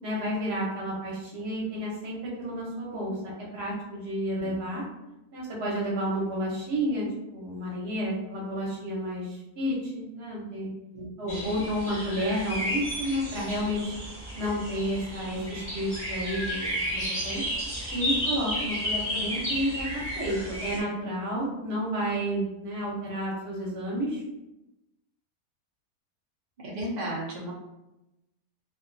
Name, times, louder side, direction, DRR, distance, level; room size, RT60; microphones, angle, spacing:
voice 1, 0.0-3.2 3.5-4.8 5.3-10.7 11.2-13.9 14.4-17.4 17.9-24.2, equal, 50° right, -4 dB, 0.9 m, -31 dB
voice 2, 4.3-4.6 10.9-11.6 26.6-27.5, right 1 dB, 85° right, -4 dB, 0.4 m, -35 dB
sound 1, 11.3-20.8, equal, 10° left, 0.7 m, -32 dB
2.5 x 2.3 x 2.5 m, 0.96 s
omnidirectional pair, 1.6 m